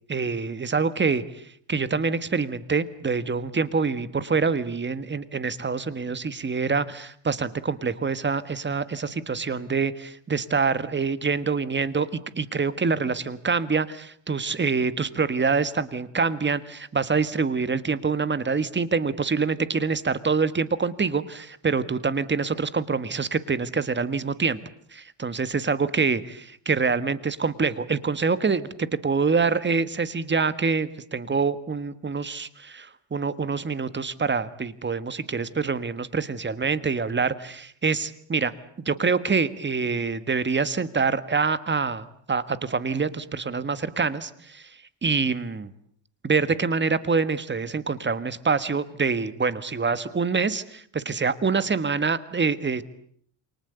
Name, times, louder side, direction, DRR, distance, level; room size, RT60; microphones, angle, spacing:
voice 1, 0.1-1.4 1.7-24.6 24.9-38.5 38.8-44.7 45.0-45.7 46.2-52.8, right 5 dB, 20° right, 14 dB, 1.6 m, -26 dB
28.5 x 24.5 x 8.2 m, 0.62 s
cardioid pair, 135°, 49 cm